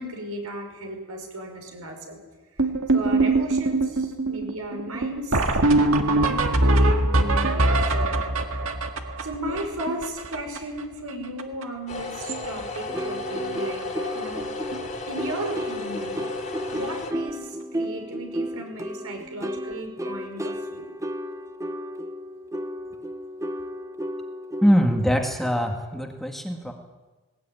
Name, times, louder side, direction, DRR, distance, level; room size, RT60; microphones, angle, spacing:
voice 1, 0.0-2.2 2.9-8.1 8.5-8.7 9.2-13.8 14.1-14.5 15.1-16.2 16.7-20.9, right 1 dB, 80° right, 3 dB, 5.8 m, -35 dB
sound 1, 2.6-10.8 11.1-11.2 11.4-11.6 11.9-12.5 12.8-13.0 13.8-13.9 14.3-14.4 14.7-14.9 17.1-17.2 19.6-19.7, right 2 dB, 65° right, 1.9 m, -23 dB
sound 2, 11.9-17.1, left 3 dB, 35° left, 3.0 m, -34 dB
sound 3, 12.9-25.8, equal, 15° right, 0.9 m, -33 dB
voice 2, 24.6-26.7, equal, ahead, 2 dB, 1.8 m, -22 dB
19.5 x 19.0 x 9.1 m, 1.2 s
head